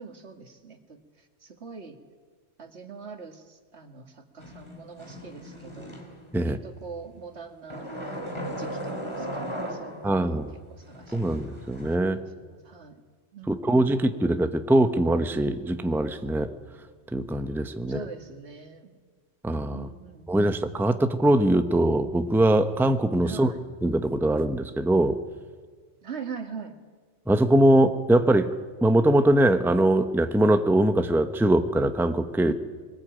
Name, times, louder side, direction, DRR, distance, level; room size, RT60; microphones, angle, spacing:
voice 1, 0.0-2.0 2.6-5.9 6.4-10.4 10.7-11.3 12.1-13.0 13.3-13.8 17.9-18.9 19.7-20.5 23.2-23.7 26.0-26.7 32.5-32.6, right 5 dB, 75° right, 6 dB, 2.2 m, -43 dB
sound 1, 4.4-6.4 7.7-10.3 10.9-12.0, equal, 25° left, 3.0 m, -37 dB
voice 2, 10.0-10.5 11.1-12.2 13.5-16.5 17.1-18.0 19.4-19.9 20.3-23.5 23.8-25.2 27.3-28.5 28.8-32.5, right 1 dB, ahead, 9 dB, 0.9 m, -22 dB
23.5 x 20.0 x 9.2 m, 1.5 s
omnidirectional pair, 1.1 m